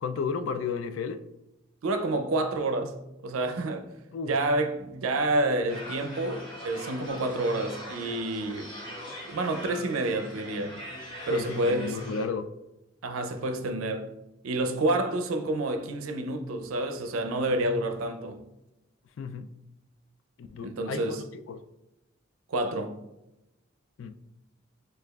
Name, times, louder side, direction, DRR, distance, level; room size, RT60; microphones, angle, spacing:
voice 1, 0.0-1.2 4.1-4.5 11.3-12.5 19.2-19.5 20.4-21.2 21.5-21.6 24.0-24.1, left 5 dB, 70° left, 0.3 m, -33 dB
voice 2, 1.8-2.9 3.2-3.9 4.2-8.7 9.3-10.8 11.3-12.0 13.0-14.1 14.4-18.4 20.6-21.2 22.5-23.0, right 2 dB, 90° right, 0.5 m, -28 dB
sound 1, 5.7-12.2, left 1 dB, 25° left, 1.0 m, -42 dB
6.5 x 2.3 x 2.3 m
head